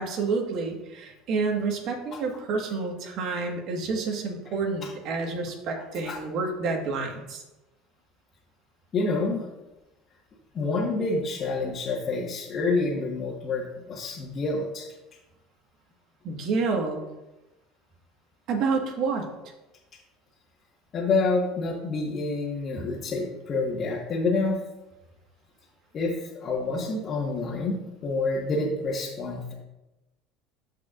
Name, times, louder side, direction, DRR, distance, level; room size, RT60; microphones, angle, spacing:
voice 1, 0.0-7.4 16.2-17.0 18.5-19.3, right 4 dB, 60° right, 2 dB, 1.7 m, -29 dB
voice 2, 8.9-9.5 10.5-14.9 20.9-24.6 25.9-29.5, left 3 dB, 40° left, -5 dB, 1.6 m, -28 dB
14.0 x 4.8 x 2.6 m, 0.99 s
hypercardioid pair, 85°, 0 cm